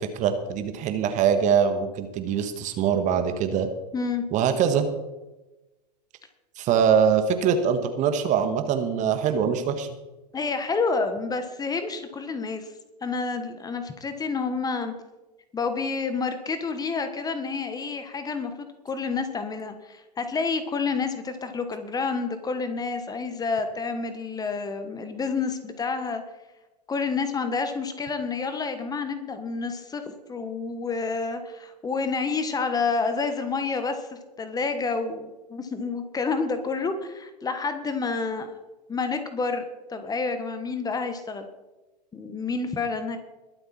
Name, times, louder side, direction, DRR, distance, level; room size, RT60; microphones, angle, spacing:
voice 1, 0.0-3.7 4.3-4.9 6.6-9.9, right 7 dB, 35° right, 8 dB, 1.6 m, -23 dB
voice 2, 3.9-4.2 10.3-12.7 13.0-14.9 15.5-26.2 26.9-30.0 30.3-38.5 38.9-39.6 39.9-41.5 42.1-43.2, left 4 dB, 15° left, 8 dB, 1.4 m, -29 dB
21.5 x 7.8 x 4.4 m, 1.0 s
hypercardioid pair, 100°, 21 cm